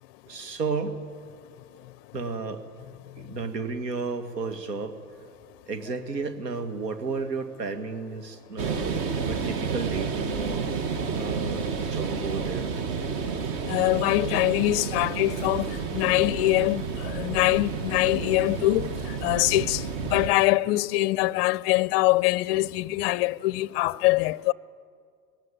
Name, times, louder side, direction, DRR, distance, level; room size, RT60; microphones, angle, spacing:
voice 1, 0.3-1.0 2.1-2.6 3.2-5.0 5.7-10.6 11.1-12.6, right 4 dB, 75° right, 1.9 m, -32 dB
sound 1, 8.6-20.3, right 5 dB, 40° right, 1.7 m, -30 dB
voice 2, 13.7-24.5, left 18 dB, 40° left, 0.5 m, -24 dB
20.5 x 17.5 x 9.1 m
figure-of-eight pair, 95°, 49 cm